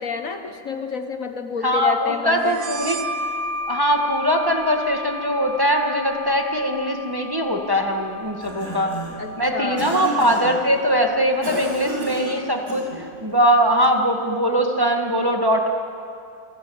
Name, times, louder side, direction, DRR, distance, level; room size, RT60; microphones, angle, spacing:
voice 1, 0.0-2.6 9.2-9.9, left 5 dB, 55° left, 6 dB, 1.6 m, -29 dB
voice 2, 1.6-3.0 3.7-8.9 9.4-15.7, equal, 15° right, 1 dB, 1.9 m, -21 dB
sound 1, 2.5-9.8, left 1 dB, 75° right, 1.7 m, -33 dB
Cough, 8.2-9.2 9.8-10.6 11.4-13.1, right 1 dB, 55° right, 6.0 m, -31 dB
29.0 x 18.0 x 8.8 m, 2.5 s
omnidirectional pair, 1.8 m